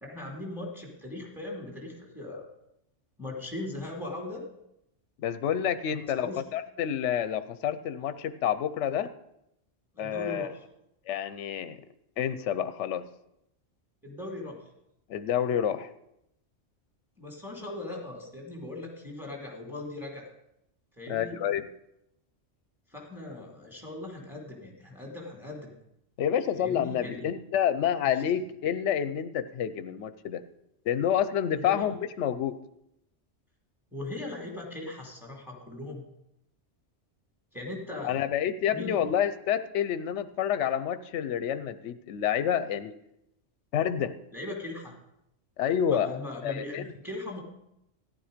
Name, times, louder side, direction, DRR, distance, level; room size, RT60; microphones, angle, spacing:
voice 1, 0.0-2.5 3.2-4.4 5.9-6.4 9.9-10.6 14.0-14.7 17.2-20.3 21.0-21.4 22.9-25.7 26.5-27.3 31.6-31.8 33.9-36.0 37.5-38.2 38.7-39.0 44.3-45.0 45.9-47.4, left 2 dB, ahead, -1 dB, 2.5 m, -39 dB
voice 2, 5.2-9.1 10.0-10.5 11.1-11.8 12.2-13.1 15.1-15.9 21.1-21.7 26.2-30.4 30.9-32.6 38.0-42.9 43.7-44.2 45.6-46.9, left 9 dB, 70° left, 12 dB, 0.9 m, -28 dB
14.0 x 10.5 x 5.0 m, 0.81 s
omnidirectional pair, 1.3 m